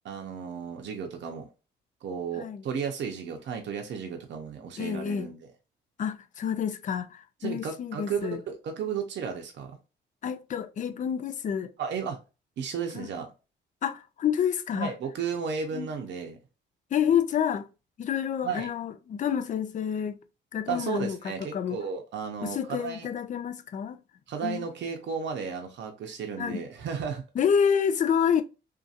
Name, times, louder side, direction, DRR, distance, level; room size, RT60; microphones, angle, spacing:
voice 1, 0.0-1.5 2.0-5.4 7.4-9.7 11.8-12.2 12.6-13.3 14.8-16.4 18.4-18.7 20.7-23.1 24.3-27.2, right 6 dB, 65° right, 0.7 m, -34 dB
voice 2, 4.8-5.3 6.0-8.4 10.2-11.7 12.9-13.1 13.8-14.9 15.7-15.9 16.9-17.7 18.0-20.2 20.5-21.8 22.4-24.0 24.4-24.6 26.4-26.6 27.4-28.4, left 8 dB, 40° left, 0.4 m, -28 dB
2.7 x 2.5 x 2.4 m
cardioid pair, 90°, 20 cm